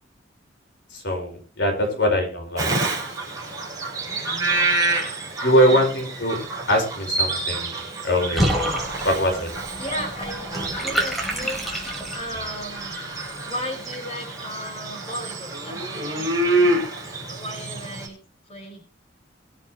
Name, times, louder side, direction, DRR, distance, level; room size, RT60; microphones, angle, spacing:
voice 1, 0.9-2.7 5.4-6.4 6.7-8.5 9.0-9.5, equal, 65° left, 2 dB, 4.9 m, -22 dB
voice 2, 1.7-2.0 5.5-5.9 9.8-13.0 13.4-16.8 17.3-18.2 18.5-18.8, equal, 30° left, 2 dB, 5.1 m, -35 dB
Bird vocalization bird call bird song, 2.6-18.1, right 2 dB, 20° right, 7.0 m, -28 dB
Water / Bathtub (filling or washing), 8.3-12.4, right 1 dB, ahead, 5.1 m, -28 dB
25.0 x 8.8 x 3.2 m, 0.33 s
head